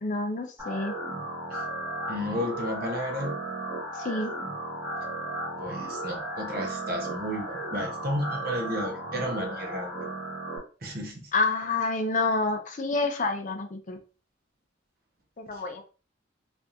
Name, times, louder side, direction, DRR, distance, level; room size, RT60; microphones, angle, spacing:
voice 1, 0.0-0.9 4.0-4.3 11.3-14.0 15.4-15.8, left 3 dB, 40° left, 5 dB, 0.5 m, -28 dB
sound 1, 0.6-10.6, right 1 dB, 10° right, 1.2 m, -35 dB
voice 2, 2.1-3.3 5.6-10.1 10.8-11.3, equal, 50° right, 1 dB, 0.9 m, -33 dB
3.4 x 2.5 x 2.7 m, 0.36 s
head